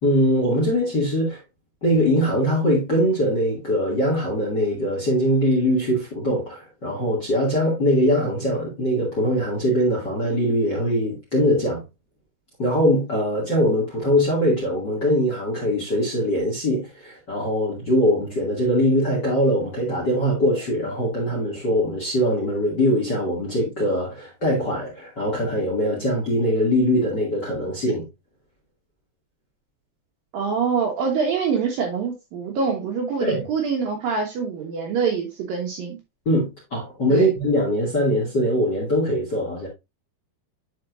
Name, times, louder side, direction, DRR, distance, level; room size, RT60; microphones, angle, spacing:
voice 1, 0.0-1.4 1.8-11.8 12.6-28.0 33.2-33.4 36.3-39.7, equal, 35° left, 1.9 m, -22 dB
voice 2, 30.3-36.0 37.1-37.3, right 5 dB, 65° right, 2.5 m, -25 dB
11.0 x 4.4 x 2.5 m
omnidirectional pair, 5.2 m